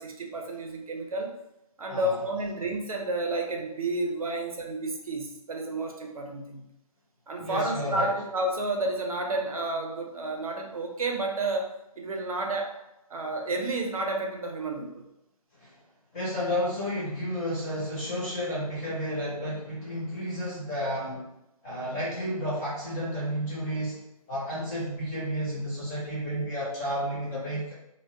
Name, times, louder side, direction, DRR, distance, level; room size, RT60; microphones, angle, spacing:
voice 1, 0.0-1.3 1.8-6.6 7.3-12.7 13.1-15.0, right 2 dB, 65° right, 1 dB, 0.5 m, -31 dB
voice 2, 1.9-2.2 7.4-8.1 15.6-15.7 16.1-21.3 21.6-24.0 24.3-27.7, equal, 10° left, -9 dB, 0.4 m, -31 dB
2.5 x 2.0 x 2.5 m, 0.89 s
figure-of-eight pair, 145°, 19 cm